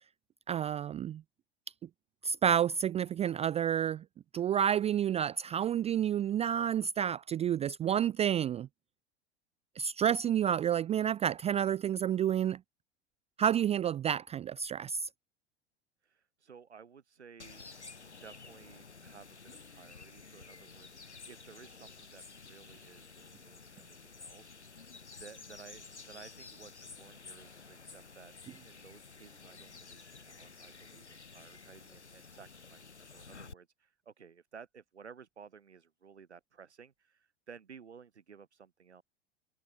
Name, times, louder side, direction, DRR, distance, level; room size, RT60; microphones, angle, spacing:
voice 1, 0.5-1.2 2.2-4.0 4.3-8.7 9.8-12.6 13.4-15.1, right 9 dB, 20° right, 0.5 m, -30 dB
voice 2, 16.0-17.7 18.0-28.3 28.6-39.0, right 6 dB, 80° right, 3.1 m, -55 dB
sound 1, 17.4-33.5, left 4 dB, 85° left, 7.9 m, -52 dB
figure-of-eight pair, 85°, 33 cm